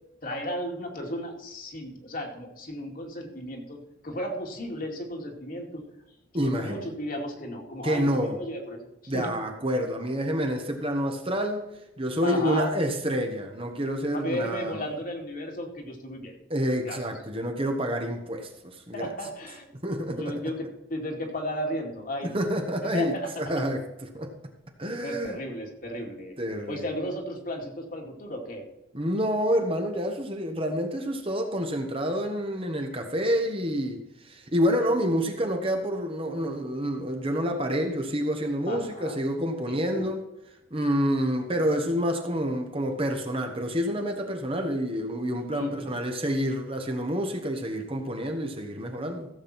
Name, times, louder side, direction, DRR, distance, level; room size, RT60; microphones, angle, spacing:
voice 1, 0.2-5.8 6.3-9.3 12.2-12.7 14.1-16.3 16.8-17.0 18.9-19.7 20.2-22.4 22.9-23.3 25.0-26.3 26.7-28.7 38.7-39.2 39.9-40.1 45.5-46.0, equal, 45° left, 2.3 m, -34 dB
voice 2, 6.3-6.9 7.8-8.4 9.1-11.7 12.0-14.9 16.5-19.1 19.8-20.4 22.2-24.3 24.8-25.4 26.4-26.8 28.9-40.2 40.7-49.3, equal, 30° right, 1.4 m, -28 dB
15.5 x 7.8 x 4.4 m
head